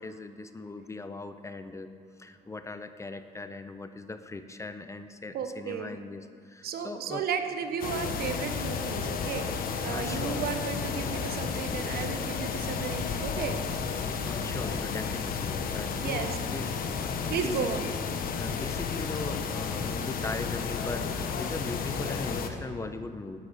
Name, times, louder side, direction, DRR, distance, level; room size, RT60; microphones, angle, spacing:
voice 1, 0.0-1.9 2.2-7.3 9.9-10.5 14.2-17.7 18.3-23.4, left 3 dB, 15° left, 10 dB, 0.7 m, -39 dB
voice 2, 5.3-6.0 6.6-13.6 16.0-16.4 17.3-17.8, right 7 dB, 65° right, 7 dB, 1.2 m, -34 dB
sound 1, 7.8-22.5, left 6 dB, 60° left, 1.3 m, -32 dB
11.5 x 8.2 x 8.5 m, 2.2 s
cardioid pair, 110°, 17 cm